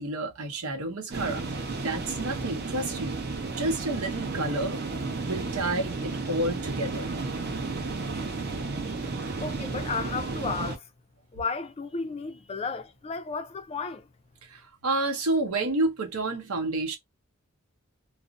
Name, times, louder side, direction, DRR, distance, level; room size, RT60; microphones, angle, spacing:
voice 1, 0.0-3.2 3.5-4.8 5.2-7.1 14.5-17.0, right 2 dB, 90° right, 0.8 m, -30 dB
sound 1, 1.1-10.8, right 3 dB, 50° right, 0.6 m, -33 dB
voice 2, 9.4-10.9 11.3-14.1, left 4 dB, 30° left, 0.4 m, -33 dB
2.4 x 2.0 x 2.4 m
head